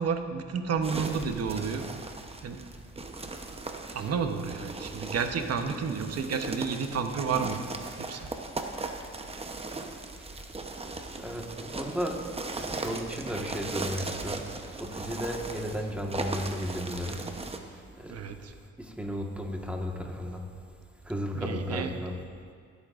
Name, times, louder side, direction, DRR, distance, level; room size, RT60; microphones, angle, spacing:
voice 1, 0.0-1.9 2.4-2.6 3.9-7.6 8.0-8.3 18.0-18.5 21.3-21.9, right 6 dB, 55° right, 6 dB, 1.0 m, -31 dB
sound 1, 0.8-17.6, right 3 dB, 20° right, 0.9 m, -38 dB
voice 2, 11.2-12.2 12.5-14.4 14.8-17.2 18.0-18.1 19.0-20.4 21.1-22.1, equal, 5° right, 0 dB, 1.5 m, -34 dB
25.5 x 8.5 x 2.5 m, 2.2 s
cardioid pair, 90°, 30 cm